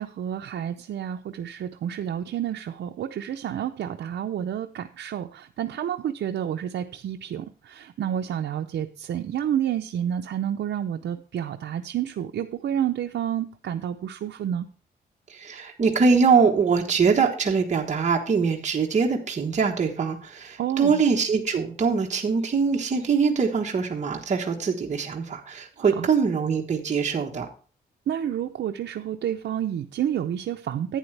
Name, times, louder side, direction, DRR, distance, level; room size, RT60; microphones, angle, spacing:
voice 1, 0.0-14.7 20.6-21.0 25.8-26.1 28.1-31.0, right 10 dB, 75° right, 5 dB, 0.6 m, -29 dB
voice 2, 15.3-27.5, right 5 dB, 40° right, 1 dB, 1.2 m, -23 dB
11.0 x 8.9 x 3.3 m, 0.40 s
wide cardioid pair, 135°, 19 cm